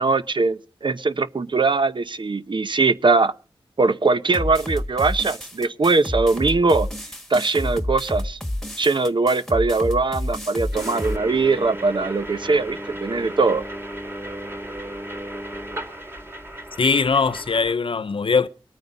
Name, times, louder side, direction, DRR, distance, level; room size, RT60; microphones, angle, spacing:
voice 1, 0.0-3.3 3.8-6.9 7.3-8.4 8.8-13.6, right 3 dB, 55° right, 0.8 m, -21 dB
sound 1, 4.3-11.2, left 1 dB, 5° left, 1.7 m, -29 dB
sound 2, 10.7-17.7, right 1 dB, 25° right, 2.4 m, -34 dB
voice 2, 16.8-18.5, left 5 dB, 65° left, 0.7 m, -20 dB
22.5 x 9.1 x 4.0 m
cardioid pair, 50°, 10 cm